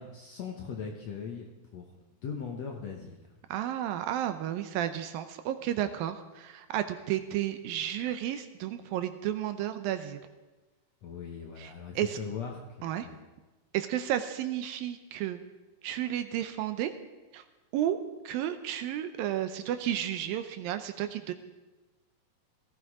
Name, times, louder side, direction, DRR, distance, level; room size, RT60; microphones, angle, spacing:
voice 1, 0.0-1.9 2.2-3.3 11.0-12.5 12.8-13.2, left 6 dB, 65° left, 1 dB, 1.8 m, -39 dB
voice 2, 3.5-10.2 11.6-12.2 12.8-13.1 13.7-15.4 15.8-16.9 17.3-17.4 17.7-18.0 18.2-21.3, right 11 dB, 75° right, 9 dB, 2.3 m, -32 dB
17.5 x 15.0 x 4.8 m, 1.2 s
omnidirectional pair, 4.4 m